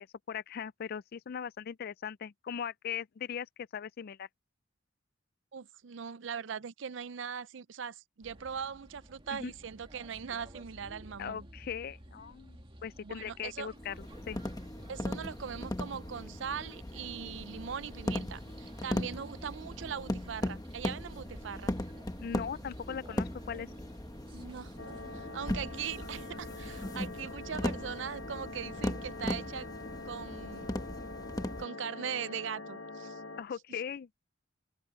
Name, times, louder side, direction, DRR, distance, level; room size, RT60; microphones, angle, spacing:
voice 1, 0.0-3.5 3.7-4.3 9.3-9.5 11.2-14.4 22.2-23.7 33.4-34.1, left 7 dB, 55° left, 0.4 m, -39 dB
voice 2, 5.5-11.5 13.0-13.7 14.9-21.7 24.3-24.7 25.1-29.7 30.0-30.8 31.6-33.2, right 7 dB, 75° right, 0.5 m, -40 dB
sound 1, 8.2-27.1, right 1 dB, 30° right, 2.4 m, -53 dB
sound 2, 13.8-31.6, left 1 dB, 20° left, 1.2 m, -38 dB
sound 3, 24.8-33.4, left 3 dB, 80° left, 1.0 m, -45 dB
head